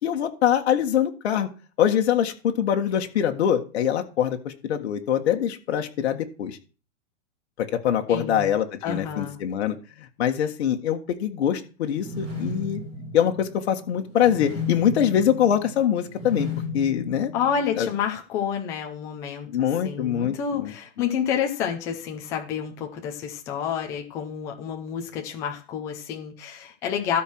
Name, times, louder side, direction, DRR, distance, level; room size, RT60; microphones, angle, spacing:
voice 1, 0.0-1.5 1.8-6.6 7.6-12.8 13.1-17.3 17.8-17.9 19.5-20.7, left 9 dB, 60° left, 4 dB, 1.6 m, -24 dB
voice 2, 8.1-8.5 8.8-9.4 17.3-19.5 19.8-27.2, left 8 dB, 10° left, 2 dB, 0.5 m, -29 dB
sound 1, 11.9-18.0, left 3 dB, 15° right, 3.5 m, -34 dB
12.5 x 4.6 x 6.1 m, 0.35 s
supercardioid pair, 175°, 37 cm